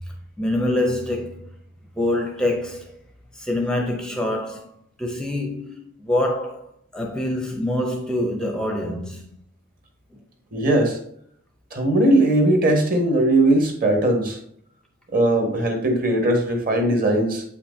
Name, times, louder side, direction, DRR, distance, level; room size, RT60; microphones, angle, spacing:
voice 1, 0.1-1.5 2.0-2.9 3.3-4.7 5.0-6.7 6.9-9.3 10.1-10.2, left 1 dB, 5° left, 0.5 m, -25 dB
voice 2, 10.5-11.0 11.7-14.4 15.1-17.4, right 1 dB, 45° right, 1.4 m, -19 dB
7.9 x 5.7 x 2.7 m
head